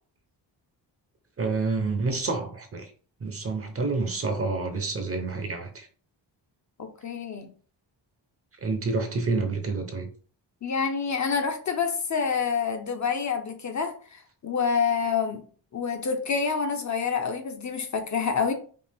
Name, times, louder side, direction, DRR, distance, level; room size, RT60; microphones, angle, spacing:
voice 1, 1.4-2.9 3.2-5.9 8.6-10.1, right 3 dB, 30° right, 0.7 m, -28 dB
voice 2, 6.8-7.5 10.6-15.4 15.7-18.5, left 6 dB, 40° left, 0.6 m, -27 dB
5.2 x 2.5 x 3.4 m
wide cardioid pair, 175°, 44 cm